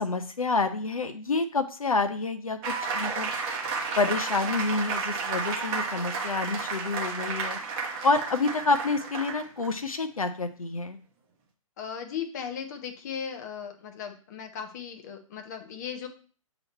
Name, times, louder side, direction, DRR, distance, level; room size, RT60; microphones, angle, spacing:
voice 1, 0.0-3.3 4.0-7.6 8.0-11.0, left 3 dB, 70° left, 8 dB, 0.6 m, -28 dB
sound 1, 2.6-9.7, right 4 dB, 20° right, 0.9 m, -32 dB
voice 2, 11.8-16.1, left 7 dB, 30° left, 5 dB, 0.8 m, -37 dB
7.6 x 3.0 x 4.2 m, 0.40 s
figure-of-eight pair, 130°, 18 cm